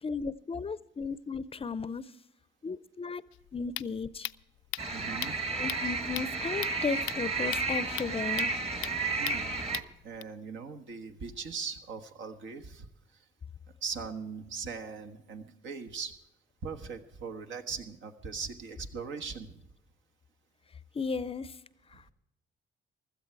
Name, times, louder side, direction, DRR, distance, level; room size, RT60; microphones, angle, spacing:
voice 1, 0.0-2.1 2.6-3.2 3.5-4.3 5.5-8.6 20.9-21.6 21.9-22.0, left 5 dB, 30° left, 0.5 m, -35 dB
sound 1, 3.3-10.2, left 16 dB, 80° left, 0.4 m, -41 dB
sound 2, 4.8-9.8, right 3 dB, 30° right, 1.4 m, -32 dB
voice 2, 4.9-5.4 9.2-9.6 10.0-12.9 13.8-16.1 16.6-19.6, right 5 dB, 75° right, 1.4 m, -40 dB
16.0 x 13.0 x 4.6 m
cardioid pair, 90°, 20 cm